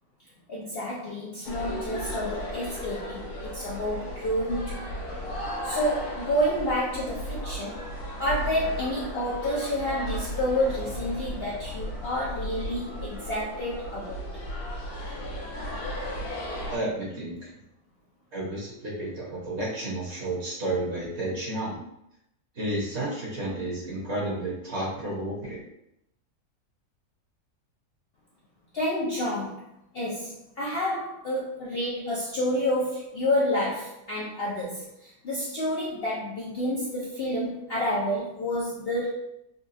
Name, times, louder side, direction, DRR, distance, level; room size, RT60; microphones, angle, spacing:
voice 1, 0.5-4.9 5.6-7.7 8.1-14.2 28.7-29.6 29.9-39.1, equal, 60° left, -6 dB, 0.6 m, -29 dB
sound 1, 1.4-16.8, equal, 80° left, 1.2 m, -35 dB
voice 2, 16.7-17.5 18.3-21.8 22.5-25.6, right 1 dB, 50° right, -6 dB, 1.3 m, -31 dB
4.0 x 2.3 x 2.6 m, 0.80 s
omnidirectional pair, 1.6 m